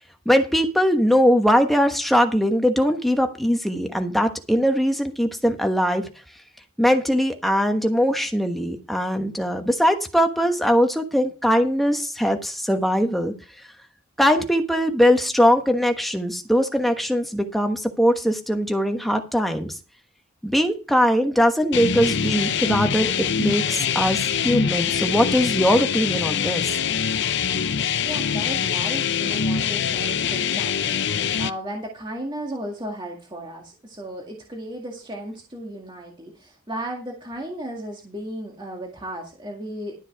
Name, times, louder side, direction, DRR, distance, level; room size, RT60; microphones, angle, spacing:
voice 1, 0.2-6.1 6.8-13.3 14.2-19.8 20.4-26.7, equal, ahead, 5 dB, 1.2 m, -21 dB
sound 1, 21.7-31.5, left 7 dB, 55° left, 0.6 m, -24 dB
voice 2, 28.0-39.9, right 1 dB, 20° right, 0 dB, 1.9 m, -35 dB
12.5 x 7.4 x 4.7 m, 0.33 s
head